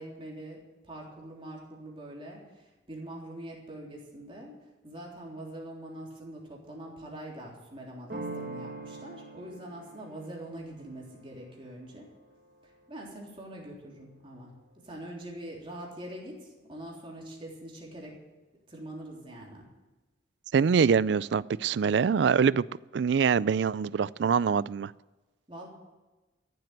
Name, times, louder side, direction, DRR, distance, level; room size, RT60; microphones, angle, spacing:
voice 1, 0.0-4.5 4.8-12.1 12.6-14.5 14.8-18.2 18.7-19.7 25.5-25.7, right 1 dB, 30° right, -2 dB, 3.5 m, -43 dB
sound 1, 8.1-13.6, right 2 dB, 50° right, 2.3 m, -44 dB
voice 2, 20.5-22.6 22.9-24.9, right 6 dB, 70° right, 20 dB, 0.4 m, -24 dB
14.5 x 7.8 x 9.1 m, 1.1 s
head